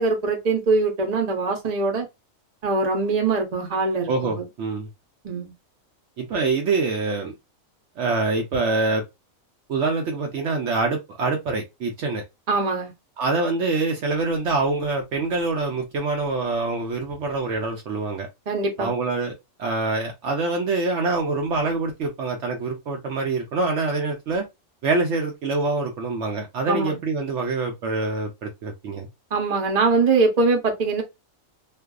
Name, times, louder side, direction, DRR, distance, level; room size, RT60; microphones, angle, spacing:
voice 1, 0.0-2.1 2.6-4.4 5.2-5.5 12.5-12.9 18.5-18.9 26.7-27.0 29.3-31.0, right 3 dB, 35° right, 0.8 m, -22 dB
voice 2, 4.1-4.9 6.2-7.3 8.0-9.0 9.7-12.2 13.2-18.3 18.8-19.3 19.6-24.5 24.8-29.1, right 3 dB, 65° right, 0.8 m, -25 dB
2.5 x 2.3 x 2.3 m
omnidirectional pair, 1.4 m